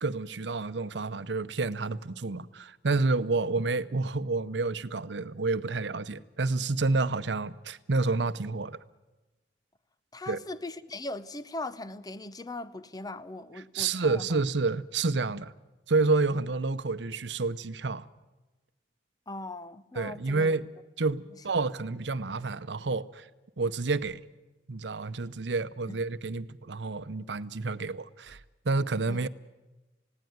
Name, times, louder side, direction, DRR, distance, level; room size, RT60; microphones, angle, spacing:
voice 1, 0.0-8.8 10.3-10.4 13.7-15.5 15.9-18.0 20.0-20.7 21.0-23.3 23.6-24.2 24.7-28.4 28.6-29.3, right 3 dB, 80° right, 0.8 m, -29 dB
voice 2, 10.1-14.4 16.3-16.4 19.3-20.5 25.9-26.0 29.1-29.2, left 2 dB, 20° left, 0.8 m, -39 dB
20.0 x 16.5 x 9.4 m
head